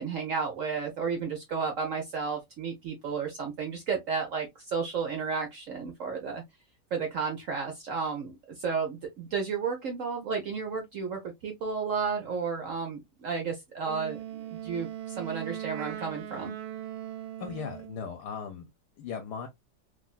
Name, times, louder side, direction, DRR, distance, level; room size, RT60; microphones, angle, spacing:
voice 1, 0.0-6.4 6.9-14.2 14.5-16.5, right 5 dB, 70° right, 0.7 m, -32 dB
Wind instrument woodwind instrument, 13.8-18.1, right 11 dB, 85° right, 1.4 m, -39 dB
voice 2, 17.4-18.7 19.0-19.5, left 6 dB, 65° left, 1.1 m, -37 dB
3.3 x 2.4 x 2.3 m
omnidirectional pair, 2.1 m